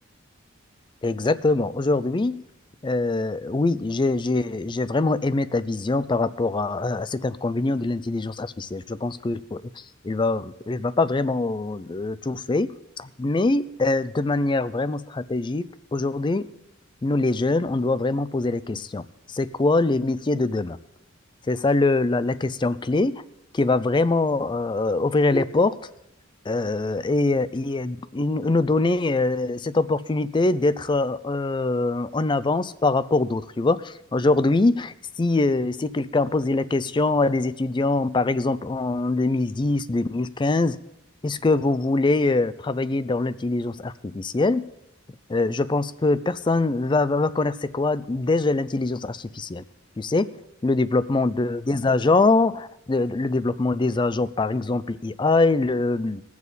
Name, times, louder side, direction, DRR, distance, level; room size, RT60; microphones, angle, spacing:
voice 1, 1.0-2.4 2.8-9.6 10.0-12.7 13.0-16.5 17.0-19.0 19.3-20.8 21.5-23.2 23.5-25.8 26.5-40.8 41.2-44.7 45.3-49.6 50.0-50.3 50.6-56.2, left 2 dB, 25° left, 16 dB, 0.4 m, -23 dB
20.5 x 7.2 x 4.1 m, 0.84 s
head